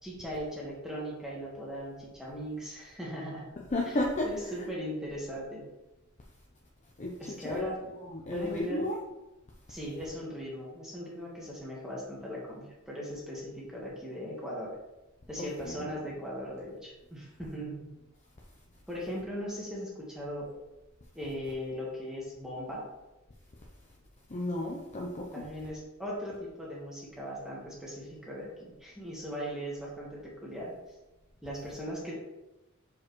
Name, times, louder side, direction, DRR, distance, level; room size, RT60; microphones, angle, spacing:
voice 1, 0.0-3.5 4.2-5.7 7.2-7.8 8.3-8.8 9.7-14.7 15.3-17.9 18.9-20.5 21.1-22.8 25.3-30.7 31.4-32.1, equal, 5° right, -5 dB, 1.3 m, -39 dB
voice 2, 3.7-4.7 7.0-9.0 15.4-16.2 24.3-25.5, left 1 dB, 35° left, -1 dB, 0.7 m, -34 dB
6.3 x 4.9 x 3.1 m, 1.0 s
head